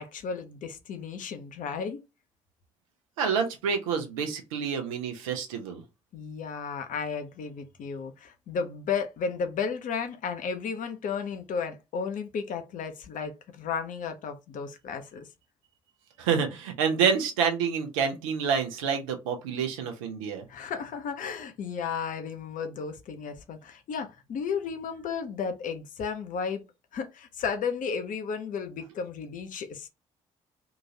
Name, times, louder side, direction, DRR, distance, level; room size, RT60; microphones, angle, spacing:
voice 1, 0.0-2.0 6.1-15.3 20.5-26.6 26.9-29.9, left 6 dB, 50° left, 0.7 m, -33 dB
voice 2, 3.2-5.8 16.2-20.4, right 6 dB, 70° right, 0.7 m, -28 dB
3.8 x 2.4 x 2.7 m
figure-of-eight pair, 40°, 17 cm